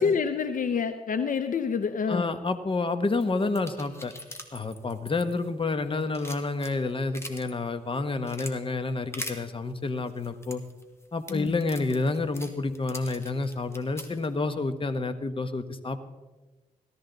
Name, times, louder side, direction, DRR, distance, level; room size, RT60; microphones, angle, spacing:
voice 1, 0.0-2.3 11.3-11.5, left 6 dB, 60° left, 9 dB, 0.7 m, -27 dB
voice 2, 2.1-4.1 4.5-10.6 11.1-16.0, left 3 dB, 35° left, 10 dB, 1.1 m, -29 dB
sound 1, 3.2-5.7 6.0-7.5 7.9-8.5 9.1-9.4 10.1-14.3, left 1 dB, 15° left, 1.9 m, -42 dB
17.0 x 13.0 x 4.0 m, 1.2 s
cardioid pair, 65°, 15 cm